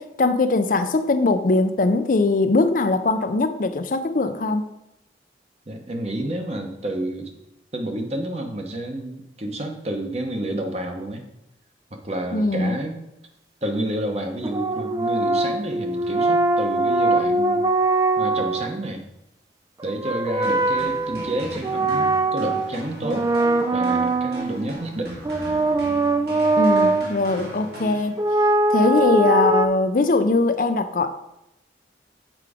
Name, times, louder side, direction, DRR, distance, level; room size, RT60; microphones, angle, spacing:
voice 1, 0.0-4.7 12.3-12.8 26.6-28.1 28.7-31.1, left 3 dB, 50° left, 9 dB, 0.5 m, -21 dB
voice 2, 5.7-7.3 7.7-11.2 11.9-13.0 13.6-17.6 18.2-19.0 19.8-23.3 23.7-25.2, right 1 dB, 35° right, 4 dB, 1.0 m, -29 dB
sound 1, 14.4-18.7 19.8-22.7 23.0-24.7 25.2-27.1 28.2-29.7, right 2 dB, 20° right, 0.3 m, -22 dB
sound 2, 20.4-28.6, right 1 dB, 65° right, 2.0 m, -38 dB
7.6 x 4.8 x 4.9 m, 0.85 s
head